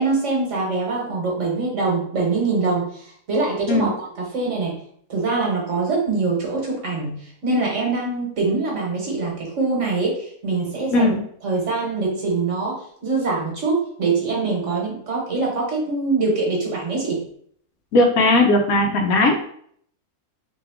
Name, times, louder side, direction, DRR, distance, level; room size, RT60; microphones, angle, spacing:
voice 1, 0.0-4.8 5.1-11.1 11.4-17.2, right 3 dB, 55° right, -2 dB, 1.3 m, -24 dB
voice 2, 17.9-19.5, left 2 dB, 70° left, 4 dB, 1.0 m, -17 dB
3.4 x 2.9 x 3.4 m, 0.63 s
omnidirectional pair, 1.6 m